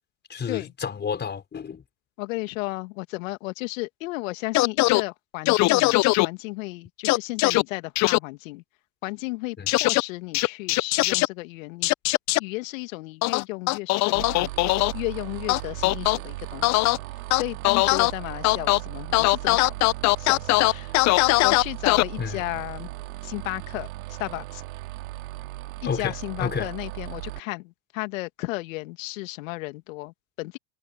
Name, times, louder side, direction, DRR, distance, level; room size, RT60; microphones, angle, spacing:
voice 1, 0.3-1.8 9.6-9.7 22.2-22.4 25.8-26.7, left 6 dB, 25° left, 5.2 m, -30 dB
voice 2, 2.2-8.6 9.0-11.9 12.4-14.5 14.9-16.8 17.3-19.9 20.2-21.0 21.4-22.9 23.2-24.6 25.8-30.6, left 23 dB, 65° left, 2.3 m, -34 dB
sound 1, 4.5-5.0 5.5-6.3 7.0-7.6 8.0-8.2 9.7-10.0 10.3-11.3 11.8-12.4 13.2-14.9 15.5-16.2 16.6-17.0 17.3-18.1 18.4-18.8 19.1-22.0, left 21 dB, 40° left, 0.7 m, -20 dB
sound 2, 14.1-27.4, right 18 dB, 75° right, 2.2 m, -37 dB
hypercardioid pair, 95°, 42 cm